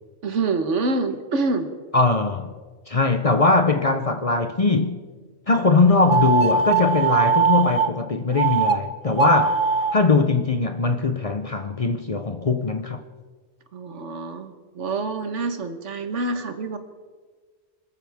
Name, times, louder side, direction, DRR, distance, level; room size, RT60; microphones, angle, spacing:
voice 1, 0.2-1.7 13.7-16.8, right 3 dB, 85° right, 1.5 m, -26 dB
voice 2, 1.9-2.5 2.9-5.0 5.5-9.6 9.9-13.0, left 3 dB, 40° left, 0.6 m, -20 dB
sound 1, 6.1-7.9 8.4-8.8 9.1-9.9, right 5 dB, 55° right, 0.9 m, -20 dB
25.0 x 14.0 x 3.5 m
omnidirectional pair, 1.2 m